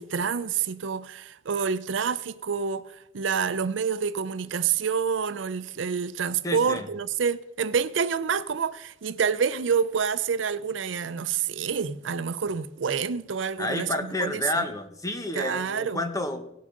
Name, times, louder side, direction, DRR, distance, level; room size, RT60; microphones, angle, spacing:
voice 1, 0.0-13.9 14.2-14.6 15.3-16.0, right 6 dB, 85° right, 0.5 m, -28 dB
voice 2, 6.4-6.8 13.6-16.4, left 1 dB, 20° left, 1.2 m, -30 dB
18.0 x 6.5 x 3.8 m
head